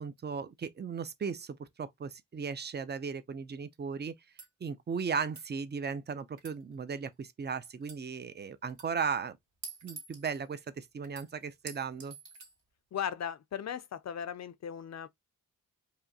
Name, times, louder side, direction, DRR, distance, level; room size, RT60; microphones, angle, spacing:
voice 1, 0.0-4.1 4.6-9.4 9.8-12.2, right 6 dB, 30° right, 0.5 m, -36 dB
sound 1, 4.2-4.5 5.2-5.5 6.3-7.2 7.8-8.1 8.7-8.9 9.8-10.5 11.0-11.7 12.3-12.6, right 4 dB, 60° right, 1.4 m, -55 dB
Chink clink, 9.6-10.5 11.7-12.5, right 5 dB, 85° right, 2.4 m, -46 dB
voice 2, 12.9-15.1, left 8 dB, 55° left, 0.4 m, -37 dB
4.8 x 2.7 x 2.7 m
wide cardioid pair, 120°, 33 cm